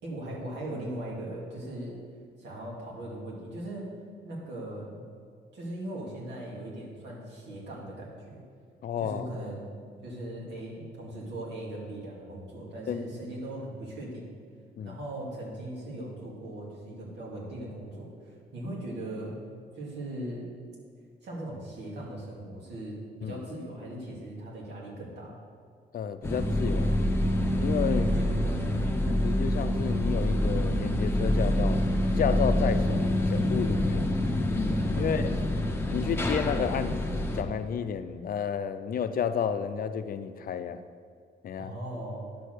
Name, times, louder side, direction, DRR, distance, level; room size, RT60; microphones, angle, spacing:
voice 1, 0.0-2.0 2.4-3.9 4.2-5.1 5.5-8.4 9.0-9.7 10.0-14.3 14.8-19.4 19.8-20.5 21.2-25.4 27.8-28.9 34.7-35.2 41.6-42.3, right 1 dB, 85° right, -4 dB, 2.4 m, -39 dB
voice 2, 8.8-9.3 12.9-13.1 14.8-15.0 23.2-23.4 25.9-27.0 27.6-28.0 29.1-31.8 32.2-34.1 34.9-35.4 35.9-40.9 41.4-41.8, left 7 dB, 55° left, 10 dB, 0.5 m, -31 dB
sound 1, 26.2-37.4, left 1 dB, 15° left, 0.8 m, -26 dB
10.0 x 4.4 x 6.6 m, 2.1 s
cardioid pair, 105°, 18 cm